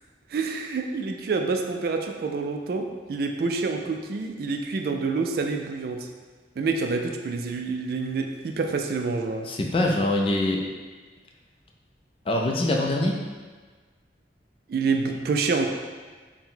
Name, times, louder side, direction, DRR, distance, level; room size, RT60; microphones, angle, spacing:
voice 1, 0.3-6.1 6.6-9.5 14.7-15.7, right 4 dB, 55° right, 4 dB, 0.3 m, -27 dB
voice 2, 9.5-10.6 12.3-13.1, left 1 dB, 30° left, 0 dB, 0.4 m, -23 dB
4.4 x 2.1 x 3.8 m, 1.4 s
head